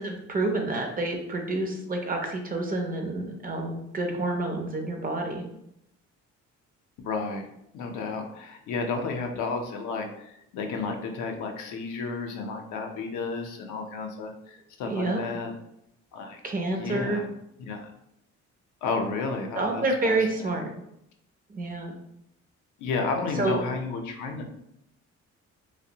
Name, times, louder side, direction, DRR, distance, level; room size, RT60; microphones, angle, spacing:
voice 1, 0.0-5.4 14.8-15.2 16.4-17.2 19.6-20.7 21.5-21.9 23.4-23.6, right 2 dB, 30° right, 3 dB, 0.5 m, -28 dB
voice 2, 7.0-7.5 7.7-15.5 16.1-16.4 16.7-17.3 17.6-17.9 18.8-20.6 22.8-24.5, left 4 dB, 80° left, 4 dB, 0.5 m, -32 dB
2.6 x 2.0 x 2.7 m, 0.79 s
cardioid pair, 90°, 30 cm